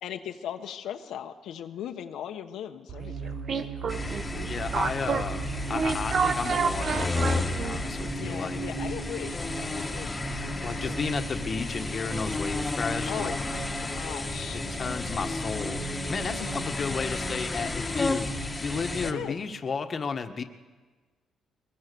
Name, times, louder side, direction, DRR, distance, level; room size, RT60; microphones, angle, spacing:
voice 1, 0.0-3.7 5.0-5.1 8.2-9.4 9.6-10.1 10.5-11.0 13.1-14.6 16.4-16.5 19.0-19.4, left 10 dB, 80° left, 5 dB, 1.2 m, -38 dB
sound 1, 2.9-8.0, right 5 dB, 55° right, 1.4 m, -30 dB
sound 2, 3.0-19.3, right 3 dB, 35° right, 3.3 m, -40 dB
sound 3, 3.9-19.1, left 3 dB, 20° left, 1.7 m, -33 dB
voice 2, 4.4-5.4 5.7-8.6 10.6-13.4 14.5-18.3 18.6-20.4, left 5 dB, 40° left, 6 dB, 1.6 m, -33 dB
22.0 x 21.0 x 7.0 m, 1.4 s
cardioid pair, 90°, 0 cm